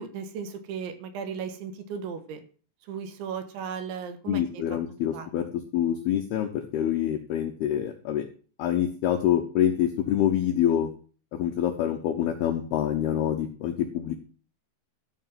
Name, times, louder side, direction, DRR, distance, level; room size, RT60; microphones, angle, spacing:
voice 1, 0.0-2.4 2.9-4.6 5.1-5.5, right 6 dB, 75° right, 8 dB, 3.6 m, -36 dB
voice 2, 4.3-5.4 5.7-8.3 8.6-10.9 11.3-14.1, left 10 dB, 80° left, 6 dB, 2.3 m, -26 dB
13.5 x 5.7 x 7.5 m, 0.41 s
omnidirectional pair, 5.7 m